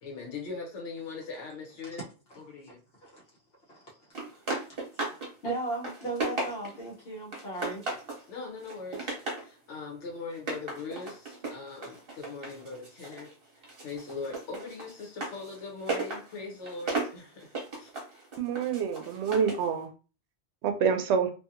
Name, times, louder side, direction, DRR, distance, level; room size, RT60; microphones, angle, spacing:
voice 1, 0.0-2.0 2.3-2.8 8.3-13.3 13.5-17.9, left 4 dB, 80° left, 1.1 m, -41 dB
sound 1, 4.1-5.3 5.6-6.9 7.3-8.2 8.6-9.5 10.3-13.3 13.6-19.7, right 3 dB, 55° right, 1.1 m, -36 dB
voice 2, 4.9-7.8, right 2 dB, 60° left, 1.0 m, -36 dB
voice 3, 18.4-19.9 20.6-21.3, right 6 dB, 75° right, 0.9 m, -27 dB
2.7 x 2.6 x 2.4 m
omnidirectional pair, 1.2 m